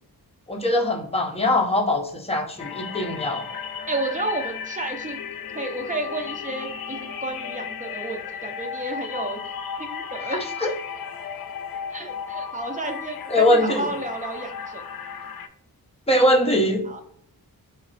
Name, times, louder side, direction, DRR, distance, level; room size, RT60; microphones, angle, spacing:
voice 1, 0.5-3.5 10.2-10.7 13.3-13.9 16.1-16.8, left 1 dB, 15° left, 2 dB, 0.7 m, -22 dB
sound 1, 2.6-15.5, left 7 dB, 70° left, 0.5 m, -34 dB
voice 2, 3.9-5.2 5.5-9.4 9.8-10.7 11.9-14.8 16.8-17.0, right 2 dB, 20° right, 3 dB, 0.7 m, -31 dB
4.0 x 3.2 x 4.1 m, 0.66 s
wide cardioid pair, 125°, 37 cm